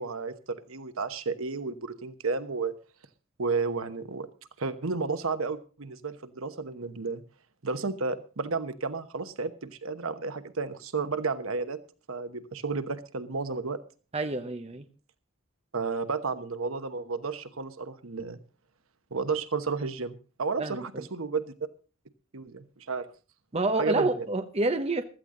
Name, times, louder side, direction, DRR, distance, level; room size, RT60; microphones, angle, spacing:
voice 1, 0.0-2.7 3.4-4.3 4.6-7.2 7.6-11.8 12.1-13.8 15.7-18.4 19.1-21.5 22.3-23.1 23.8-24.3, right 4 dB, 80° right, 1.1 m, -32 dB
voice 2, 14.1-14.8 20.6-21.0 23.5-25.0, right 2 dB, 30° right, 0.9 m, -28 dB
15.5 x 13.0 x 3.8 m
head